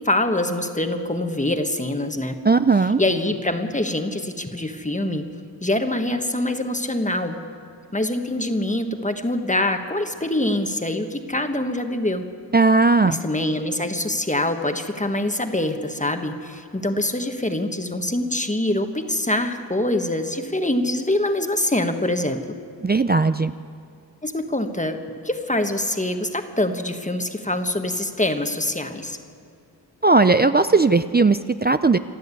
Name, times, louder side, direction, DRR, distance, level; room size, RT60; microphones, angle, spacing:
voice 1, 0.0-2.4 3.0-5.3 5.6-7.4 7.9-12.2 13.0-22.6 24.2-29.2, left 1 dB, 20° left, 6 dB, 1.4 m, -24 dB
voice 2, 2.4-3.0 12.5-13.2 22.8-23.5 30.0-32.0, right 3 dB, 25° right, 11 dB, 0.4 m, -17 dB
27.5 x 12.0 x 8.4 m, 2.3 s
wide cardioid pair, 90°, 41 cm